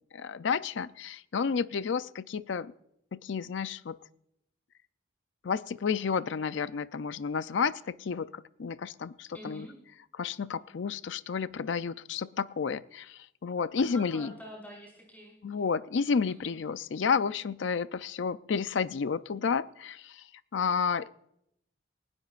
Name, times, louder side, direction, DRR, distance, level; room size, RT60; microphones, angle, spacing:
voice 1, 0.1-2.7 3.1-4.0 5.4-9.7 10.2-14.3 15.4-20.2 20.5-21.1, left 6 dB, 65° left, 15 dB, 0.4 m, -31 dB
voice 2, 9.3-9.8 13.8-15.3 16.3-16.6, equal, 10° left, -2 dB, 5.0 m, -46 dB
19.5 x 17.5 x 2.5 m, 0.77 s
head